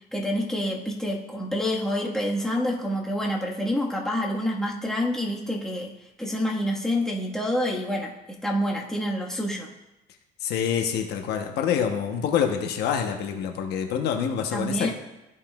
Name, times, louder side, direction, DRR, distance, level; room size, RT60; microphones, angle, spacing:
voice 1, 0.1-5.9 6.2-8.1 8.4-9.7 14.5-14.9, equal, 5° left, -3 dB, 1.4 m, -27 dB
voice 2, 10.4-14.9, left 8 dB, 80° left, 4 dB, 0.9 m, -26 dB
14.0 x 5.5 x 2.3 m, 0.96 s
cardioid pair, 110°, 17 cm